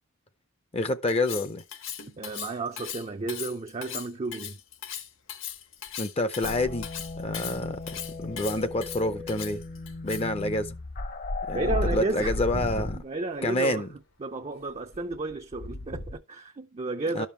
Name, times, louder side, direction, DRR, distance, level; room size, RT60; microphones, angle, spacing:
voice 1, 0.7-1.6 6.0-6.9 7.2-9.6 10.0-10.7 11.5-13.0 13.4-13.9 17.1-17.3, left 1 dB, 30° left, 0.6 m, -28 dB
Cutlery silverware, 1.1-10.4, left 10 dB, 65° left, 1.2 m, -38 dB
voice 2, 2.2-4.6 11.5-13.9 14.2-17.3, right 3 dB, 30° right, 0.5 m, -33 dB
sound 1, 3.1-4.1 4.4-16.1, left 1 dB, 90° left, 2.6 m, -52 dB
sound 2, 6.4-13.0, left 2 dB, 45° left, 0.9 m, -34 dB
12.0 x 5.4 x 4.4 m
head